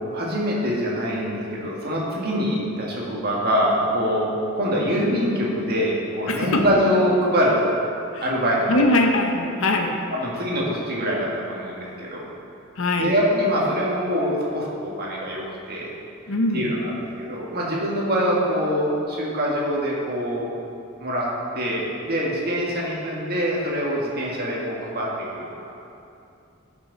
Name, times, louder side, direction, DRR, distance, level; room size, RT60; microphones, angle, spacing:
voice 1, 0.0-4.3 4.6-7.6 8.2-8.8 10.1-12.3 13.0-15.4 15.7-15.9 16.5-20.5 21.0-21.3 21.5-25.1 25.4-25.5, equal, 45° right, -4 dB, 1.8 m, -24 dB
voice 2, 6.3-6.6 8.1-8.3 8.7-10.0 12.8-13.1 16.3-16.7, left 2 dB, 60° left, 3 dB, 0.8 m, -22 dB
13.0 x 5.9 x 4.0 m, 2.6 s
head